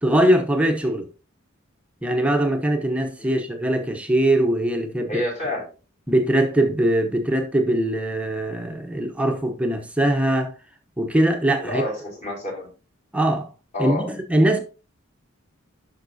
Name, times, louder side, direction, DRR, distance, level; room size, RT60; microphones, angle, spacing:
voice 1, 0.0-1.0 2.0-5.1 6.1-10.5 11.0-11.8 13.1-13.5 13.8-14.6, right 1 dB, 5° right, 0.9 m, -21 dB
voice 2, 5.1-5.7 11.6-12.7 13.7-14.0, left 1 dB, 35° left, 4.4 m, -28 dB
11.0 x 5.9 x 2.7 m
head